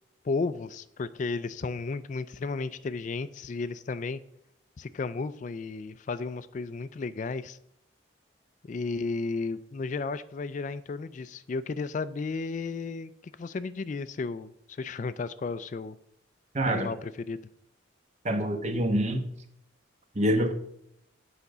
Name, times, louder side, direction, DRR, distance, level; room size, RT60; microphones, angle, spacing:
voice 1, 0.2-4.2 4.8-7.6 8.6-16.0 16.7-17.4, left 4 dB, 40° left, 14 dB, 0.3 m, -33 dB
voice 2, 16.5-16.9 18.2-19.2 20.1-20.5, right 1 dB, 35° right, 7 dB, 1.0 m, -26 dB
8.4 x 5.1 x 6.6 m, 0.78 s
head